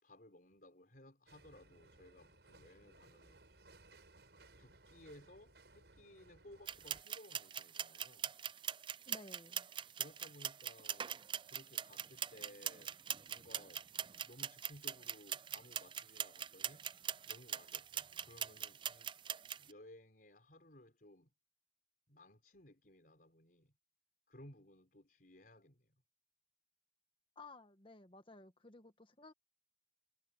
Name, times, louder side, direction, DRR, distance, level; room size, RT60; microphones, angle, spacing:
voice 1, 0.0-3.4 4.6-8.3 9.9-11.2 11.5-13.0 13.3-13.9 14.2-16.9 17.3-19.1 19.6-21.3 22.1-23.7 24.3-26.0, left 1 dB, 50° left, 4.8 m, -59 dB
sound 1, 1.3-7.0, right 2 dB, 70° right, 6.8 m, -63 dB
sound 2, 6.7-19.6, right 9 dB, 25° right, 0.4 m, -42 dB
voice 2, 9.1-9.7 27.4-29.3, left 2 dB, 30° left, 1.7 m, -56 dB
head